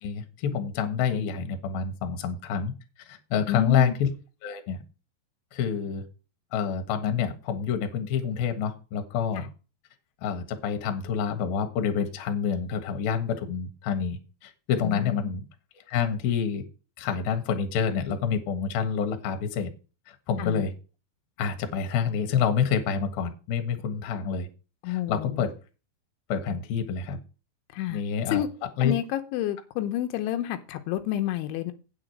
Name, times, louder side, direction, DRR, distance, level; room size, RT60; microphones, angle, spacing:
voice 1, 0.0-2.7 3.1-4.1 4.4-4.8 5.5-6.0 6.5-9.5 10.2-15.4 15.9-16.7 17.0-19.7 20.1-20.7 21.4-24.5 24.9-25.5 26.3-27.2 27.9-28.4 28.8-28.9, left 7 dB, 65° left, 2.9 m, -27 dB
voice 2, 3.5-4.0 9.4-9.5 14.8-15.3 20.4-20.6 24.8-25.5 27.7-28.0 28.3-28.5 28.8-31.7, left 12 dB, 90° left, 3.4 m, -29 dB
9.4 x 5.0 x 7.7 m
omnidirectional pair, 5.3 m